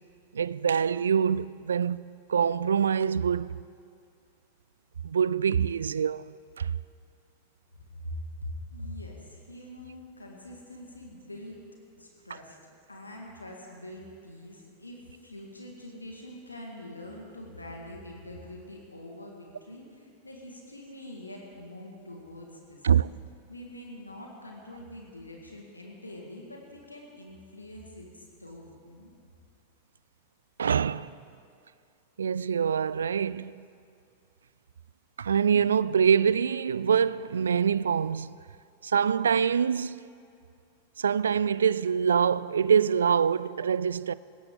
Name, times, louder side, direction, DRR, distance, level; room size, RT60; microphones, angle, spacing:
voice 1, 0.3-3.6 5.0-6.7 22.8-23.1 30.6-31.1 32.2-33.5 35.2-38.3 38.8-40.0 41.0-44.1, right 7 dB, 70° right, 0.3 m, -25 dB
voice 2, 7.9-11.6 12.0-22.9 23.5-29.1, left 1 dB, 80° left, 1.9 m, -44 dB
19.5 x 16.5 x 3.8 m
figure-of-eight pair, 90°, 0 cm